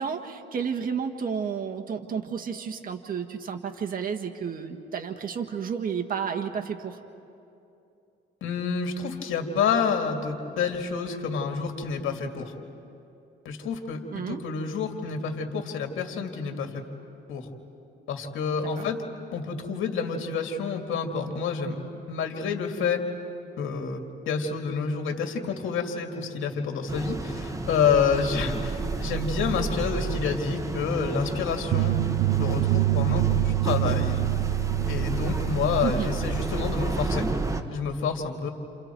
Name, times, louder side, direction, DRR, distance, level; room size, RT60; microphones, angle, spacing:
voice 1, 0.0-7.0 14.1-14.4 18.8-18.9 35.8-36.1, right 6 dB, 45° right, 3 dB, 1.5 m, -31 dB
voice 2, 8.4-12.5 13.4-16.9 17.3-17.5 18.1-19.0 19.3-21.8 22.1-23.0 23.6-31.9 32.4-34.2 34.9-37.3 37.7-38.5, left 5 dB, 80° left, 3 dB, 2.4 m, -28 dB
sound 1, 26.9-37.6, right 3 dB, 15° right, 1.3 m, -31 dB
sound 2, 31.7-36.7, right 17 dB, 70° right, 0.7 m, -26 dB
30.0 x 28.0 x 4.6 m, 2.7 s
cardioid pair, 90°, 20 cm